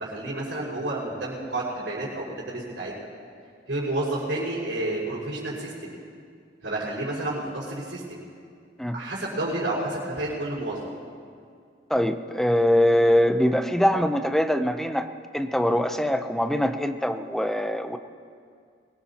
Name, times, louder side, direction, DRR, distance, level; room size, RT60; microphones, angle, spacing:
voice 1, 0.0-2.9 3.7-6.0 6.6-8.2 8.9-10.9, right 2 dB, 85° right, -10 dB, 5.4 m, -30 dB
voice 2, 11.9-15.1 15.3-18.0, equal, ahead, 7 dB, 0.6 m, -23 dB
23.5 x 20.0 x 2.9 m, 2.3 s
head